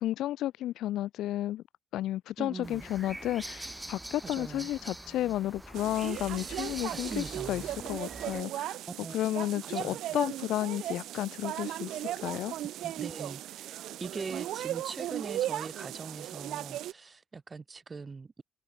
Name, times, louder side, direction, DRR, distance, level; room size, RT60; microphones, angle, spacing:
voice 1, 0.0-1.6 1.9-7.6 7.9-8.8 9.1-12.5, left 13 dB, 85° left, 0.3 m, -32 dB
voice 2, 2.4-2.9 4.2-4.7 6.9-7.7 9.0-9.2 9.6-10.0 12.8-18.4, right 4 dB, 30° right, 1.4 m, -42 dB
sound 1, 2.6-8.4, right 1 dB, 10° right, 1.4 m, -44 dB
sound 2, 5.7-16.9, right 13 dB, 80° right, 0.6 m, -37 dB
cardioid pair, 90°, 0 cm